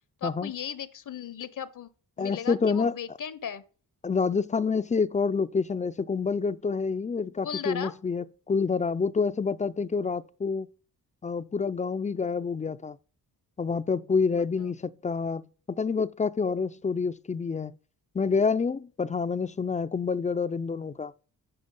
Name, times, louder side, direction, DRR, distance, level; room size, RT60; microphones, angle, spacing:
voice 1, 0.2-1.9 2.2-3.6 7.4-7.9, left 7 dB, 55° left, 0.7 m, -36 dB
voice 2, 2.2-2.9 4.0-10.7 11.2-13.0 13.6-15.4 15.7-17.7 18.1-21.1, left 5 dB, 20° left, 0.3 m, -27 dB
9.7 x 5.7 x 5.2 m
cardioid pair, 105°, 37 cm